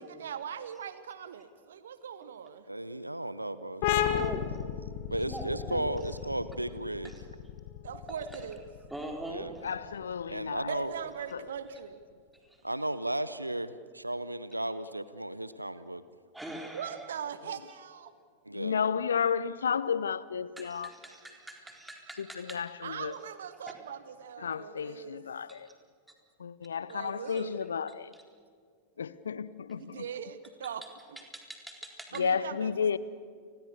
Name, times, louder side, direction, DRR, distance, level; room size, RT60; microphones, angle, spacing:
voice 1, 0.0-2.7 7.8-8.6 10.7-12.0 16.7-18.1 22.8-25.2 26.9-27.7 29.7-30.8 32.1-33.0, right 8 dB, 65° right, 1.1 m, -40 dB
voice 2, 2.7-4.4 5.1-7.1 9.3-9.5 10.3-10.9 12.6-16.0 18.4-18.8, right 1 dB, 85° right, 0.7 m, -35 dB
sound 1, 3.8-11.1, left 10 dB, 50° left, 1.7 m, -34 dB
voice 3, 3.9-4.6 5.2-5.9 7.0-7.2 7.9-8.4 8.9-9.5 12.5-12.6 16.3-17.1 20.6-22.6 22.9-23.1 25.5-25.6 27.0-27.5 30.1-30.2 31.2-32.4, right 1 dB, 5° right, 4.0 m, -44 dB
voice 4, 9.6-10.8 11.3-11.5 18.5-20.9 22.2-23.1 24.4-25.7 26.4-28.1 29.0-30.0 32.1-33.0, left 7 dB, 70° left, 0.6 m, -32 dB
29.5 x 21.5 x 6.8 m
figure-of-eight pair, 90°, 0 cm